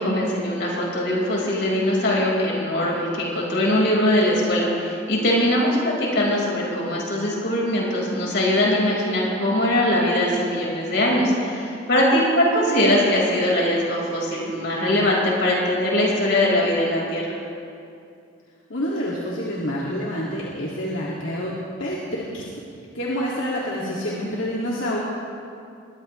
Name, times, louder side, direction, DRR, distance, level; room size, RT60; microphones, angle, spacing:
voice 1, 0.0-17.2, left 1 dB, 60° left, -3 dB, 4.6 m, -21 dB
voice 2, 18.7-22.4 22.9-25.0, equal, 80° left, -6 dB, 2.2 m, -27 dB
22.0 x 18.5 x 3.2 m, 2.5 s
head